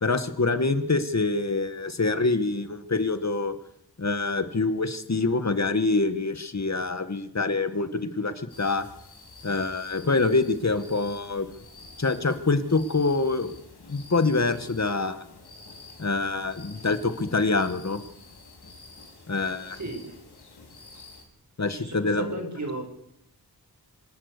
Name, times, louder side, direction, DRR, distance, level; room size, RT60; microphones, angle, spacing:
voice 1, 0.0-3.6 4.0-8.9 9.4-11.5 12.0-13.5 13.9-15.2 16.0-18.0 19.3-19.8 21.6-22.3, left 3 dB, 45° left, 10 dB, 1.9 m, -25 dB
sound 1, 8.5-21.2, left 3 dB, 90° left, 4.9 m, -49 dB
voice 2, 19.5-20.1 21.6-22.8, right 2 dB, 45° right, 3 dB, 6.8 m, -36 dB
26.0 x 18.0 x 6.9 m, 0.76 s
wide cardioid pair, 65°, 38 cm